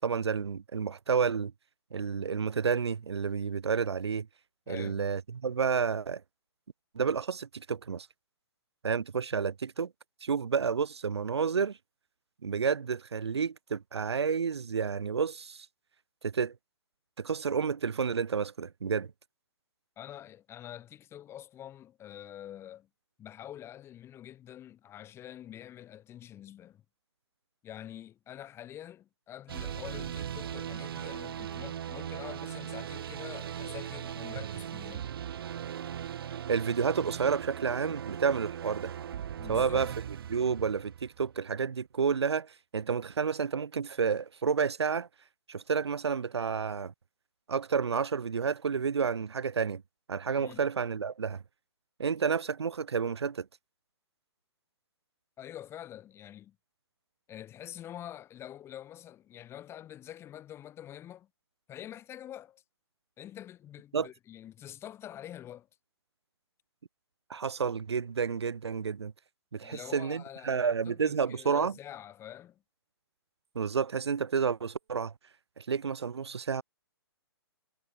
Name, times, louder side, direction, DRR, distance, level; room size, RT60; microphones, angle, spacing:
voice 1, 0.0-1.5 1.9-4.3 4.7-6.2 6.9-8.1 8.8-9.9 10.2-11.8 12.4-15.7 16.2-16.5 17.2-19.1 36.5-38.9 39.5-39.9 40.3-45.1 45.5-46.9 47.5-49.8 50.1-51.4 52.0-53.5 63.9-64.1 67.3-69.1 69.5-71.7 73.5-75.1 75.6-76.6, right 6 dB, 80° right, 4.1 m, -30 dB
voice 2, 4.7-5.0 20.0-22.9 23.2-26.8 27.6-35.1 39.4-39.9 50.4-50.6 55.4-56.5 57.3-61.3 61.7-62.6 63.2-65.7 69.6-72.6, left 11 dB, 20° left, 5.1 m, -46 dB
sound 1, 29.5-41.4, right 9 dB, 60° right, 3.0 m, -39 dB
hypercardioid pair, 145°, 14 cm